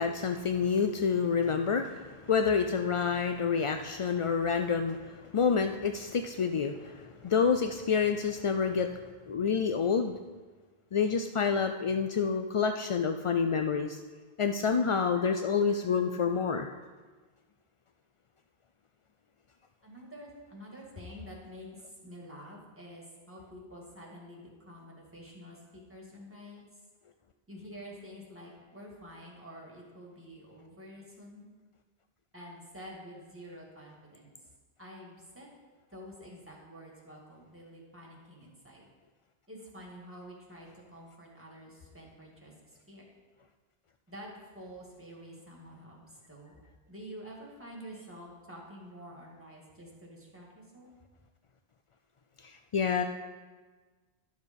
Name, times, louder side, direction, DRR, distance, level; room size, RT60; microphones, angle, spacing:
voice 1, 0.0-9.0 9.3-10.2 10.9-14.0 14.4-16.7 52.4-53.0, left 6 dB, 55° left, 6 dB, 0.3 m, -28 dB
voice 2, 19.8-21.7 22.0-26.7 27.5-31.5 32.3-34.3 34.8-35.5 35.9-38.8 39.5-43.1 44.1-44.3 44.5-46.6 46.9-50.9, equal, 10° right, -2 dB, 2.0 m, -48 dB
12.0 x 6.4 x 5.2 m, 1.4 s
omnidirectional pair, 1.1 m